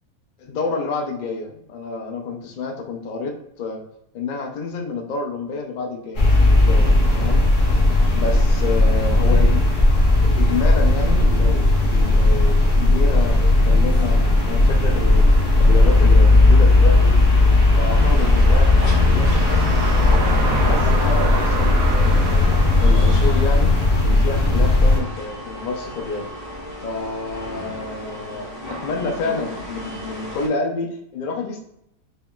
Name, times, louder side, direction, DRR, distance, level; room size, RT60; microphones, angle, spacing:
voice 1, 0.4-3.8 4.1-7.4 8.1-9.6 10.2-15.2 15.6-17.2 17.8-19.7 20.1-23.7 24.0-26.3 26.8-31.6, left 3 dB, 85° left, 2 dB, 0.4 m, -29 dB
sound 1, 6.1-25.0, left 2 dB, 40° left, 0.8 m, -16 dB
sound 2, 14.2-24.5, right 3 dB, 70° right, 1.0 m, -30 dB
sound 3, 17.9-30.5, equal, 55° left, 1.5 m, -36 dB
4.4 x 2.9 x 2.3 m, 0.79 s
omnidirectional pair, 1.6 m